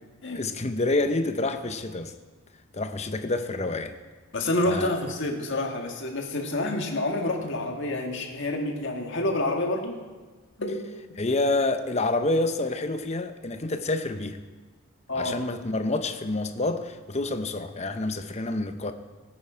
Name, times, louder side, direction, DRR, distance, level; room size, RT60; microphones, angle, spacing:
voice 1, 0.3-2.1 2.7-4.0 4.6-5.0 11.2-14.4 15.1-18.9, left 2 dB, 30° left, 0.7 m, -28 dB
voice 2, 4.3-10.0 10.6-10.8 15.1-15.4, left 1 dB, 55° left, 1.7 m, -28 dB
18.0 x 8.9 x 5.0 m
head